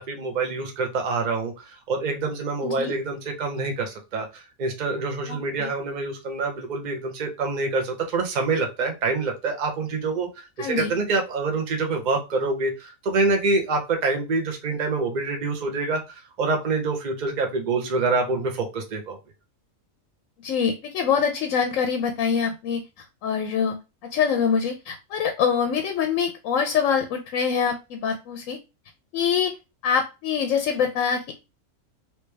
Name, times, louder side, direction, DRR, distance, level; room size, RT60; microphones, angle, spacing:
voice 1, 0.0-19.2, right 3 dB, 40° right, 3 dB, 0.8 m, -26 dB
voice 2, 5.3-5.7 10.6-10.9 20.4-23.8 24.1-28.6 29.1-29.5 29.8-31.4, left 7 dB, 75° left, 5 dB, 1.0 m, -24 dB
3.2 x 2.9 x 3.2 m, 0.27 s
omnidirectional pair, 1.4 m